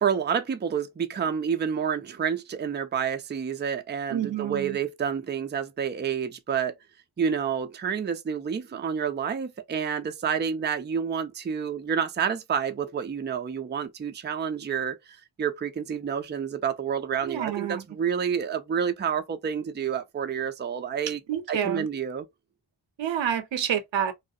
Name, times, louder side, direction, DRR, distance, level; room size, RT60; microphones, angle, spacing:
voice 1, 0.0-6.7 7.2-15.0 15.4-21.2 21.5-22.3, right 7 dB, 25° right, 0.4 m, -29 dB
voice 2, 4.1-4.8 17.2-17.8 21.3-21.9 23.0-24.1, right 9 dB, 60° right, 0.6 m, -28 dB
2.3 x 2.0 x 2.6 m
wide cardioid pair, 65°, 50 cm